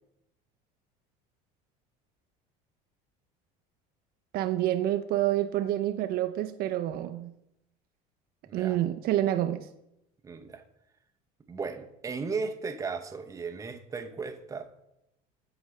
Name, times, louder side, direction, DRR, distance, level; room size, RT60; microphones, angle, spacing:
voice 1, 4.3-7.3 8.5-9.7, right 13 dB, 60° right, 8 dB, 0.5 m, -28 dB
voice 2, 8.5-8.8 10.2-10.6 11.5-14.7, right 4 dB, 15° right, 6 dB, 0.7 m, -36 dB
13.0 x 4.9 x 3.2 m, 0.83 s
supercardioid pair, 110°, 18 cm